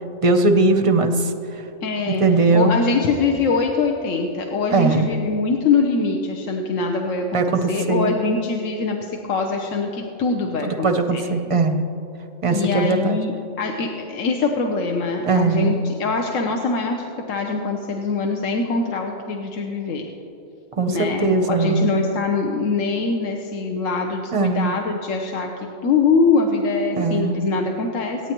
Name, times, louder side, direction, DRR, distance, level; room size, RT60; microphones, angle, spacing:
voice 1, 0.2-1.3 2.1-2.7 4.7-5.1 7.3-8.1 10.6-11.8 12.4-13.2 15.3-15.8 20.8-21.9 24.3-24.8 27.0-27.4, right 3 dB, 40° right, 7 dB, 0.5 m, -19 dB
voice 2, 1.8-2.2 2.5-11.3 12.5-20.0 20.9-28.2, left 4 dB, 70° left, 2 dB, 1.2 m, -23 dB
24.5 x 9.3 x 3.0 m, 2.9 s
omnidirectional pair, 1.4 m